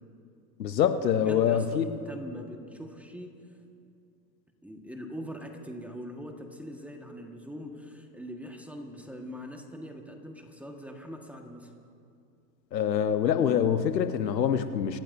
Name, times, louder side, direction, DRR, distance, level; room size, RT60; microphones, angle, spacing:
voice 1, 0.6-1.8 12.7-15.0, left 8 dB, 90° left, 11 dB, 1.0 m, -25 dB
voice 2, 1.2-3.4 4.6-11.7, equal, 5° right, 3 dB, 1.5 m, -42 dB
26.0 x 15.0 x 2.7 m, 2.5 s
hypercardioid pair, 95°, 49 cm